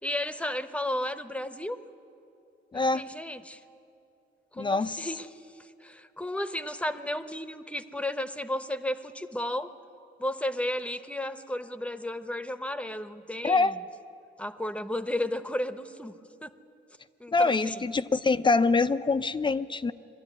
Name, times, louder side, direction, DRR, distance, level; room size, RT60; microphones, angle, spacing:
voice 1, 0.0-1.8 2.7-3.6 4.5-9.7 10.2-13.8 14.4-16.1 16.4-16.5 17.2-17.8, left 1 dB, 5° left, 10 dB, 0.9 m, -33 dB
voice 2, 2.7-3.0 4.6-5.1 13.4-13.7 17.3-19.9, left 3 dB, 25° left, 12 dB, 0.6 m, -25 dB
21.5 x 13.0 x 9.6 m, 2.7 s
cardioid pair, 90°, 20 cm